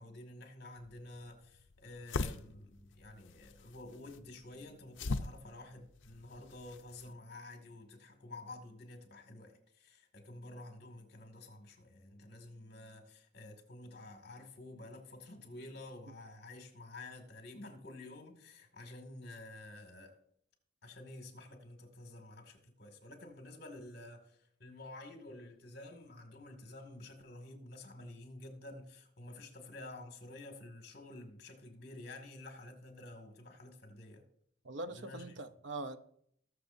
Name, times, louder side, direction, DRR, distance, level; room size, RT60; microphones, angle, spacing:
voice 1, 0.0-20.2 20.8-34.2 34.9-35.3, left 2 dB, 55° left, 2.2 m, -50 dB
sound 1, 0.8-7.1, left 3 dB, 75° left, 0.6 m, -42 dB
voice 2, 34.6-36.0, right 2 dB, 70° right, 0.7 m, -42 dB
19.5 x 6.8 x 2.7 m
head